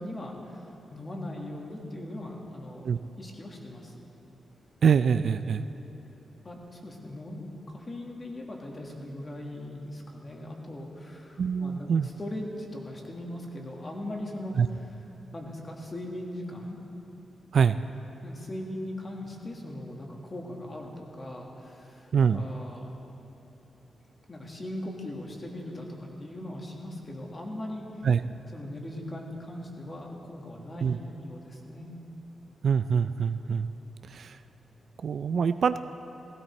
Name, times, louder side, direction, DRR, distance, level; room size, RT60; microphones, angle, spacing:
voice 1, 0.0-2.9 3.2-4.1 6.4-14.6 15.3-16.8 18.2-22.9 24.3-28.0 28.5-31.9, left 1 dB, 25° left, 0 dB, 1.7 m, -39 dB
voice 2, 4.8-5.6 11.4-12.1 14.6-14.7 17.5-17.8 22.1-22.4 28.0-28.2 30.8-31.0 32.6-33.7 34.1-34.4 35.0-35.8, right 6 dB, 55° right, 12 dB, 0.3 m, -24 dB
16.5 x 16.5 x 4.3 m, 3.0 s
wide cardioid pair, 155°, 0 cm